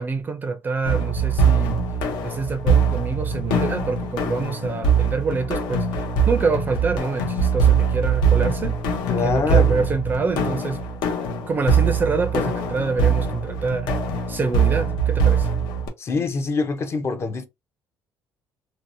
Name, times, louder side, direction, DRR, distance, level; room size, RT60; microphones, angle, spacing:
voice 1, 0.0-1.8 2.2-8.8 9.2-10.8 11.5-13.9 14.3-15.5, right 4 dB, 25° right, 0.4 m, -26 dB
sound 1, 0.8-15.9, right 5 dB, 80° left, 0.7 m, -22 dB
voice 2, 9.1-9.9 16.0-17.4, left 4 dB, 35° left, 0.5 m, -24 dB
2.7 x 2.0 x 2.5 m
cardioid pair, 130°, 8 cm